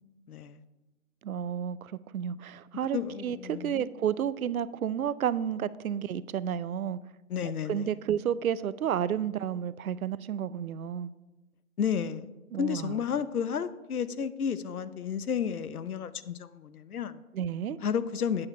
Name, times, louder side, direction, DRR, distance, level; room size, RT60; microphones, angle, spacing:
voice 1, 0.3-0.6 2.9-3.9 7.3-7.9 11.8-12.3 12.6-17.2 17.8-18.5, left 7 dB, 80° left, 14 dB, 0.7 m, -32 dB
voice 2, 1.2-7.0 7.4-11.1 12.5-13.0 17.3-17.8, right 9 dB, 70° right, 17 dB, 0.6 m, -31 dB
8.6 x 6.5 x 5.4 m, 1.1 s
hypercardioid pair, 150°, 43 cm